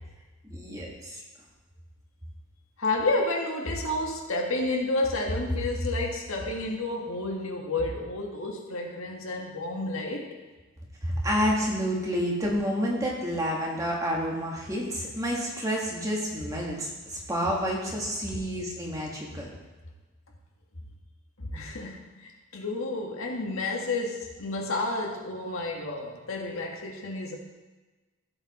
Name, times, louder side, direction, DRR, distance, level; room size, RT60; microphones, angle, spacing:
voice 1, 0.5-1.2 11.0-19.5, equal, 15° right, -3 dB, 1.8 m, -29 dB
voice 2, 2.8-10.3 21.4-27.4, left 2 dB, 85° left, 0 dB, 1.7 m, -30 dB
15.5 x 5.3 x 4.3 m, 1.2 s
head